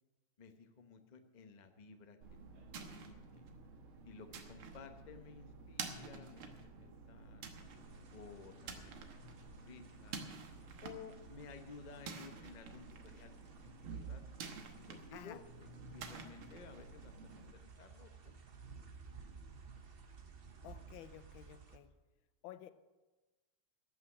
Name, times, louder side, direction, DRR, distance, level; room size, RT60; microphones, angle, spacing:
voice 1, 0.4-2.2 2.5-3.5 4.0-6.5 6.8-7.4 8.1-10.2 10.8-13.3 13.6-14.2 14.8-18.4, left 5 dB, 40° left, 7 dB, 0.6 m, -55 dB
sound 1, 2.2-17.5, right 4 dB, 80° right, 2.1 m, -50 dB
sound 2, 7.6-21.8, right 5 dB, 45° right, 0.8 m, -58 dB
voice 2, 20.6-21.9 22.4-22.7, left 12 dB, 75° left, 13 dB, 1.3 m, -52 dB
13.5 x 6.1 x 9.8 m, 1.2 s
omnidirectional pair, 2.3 m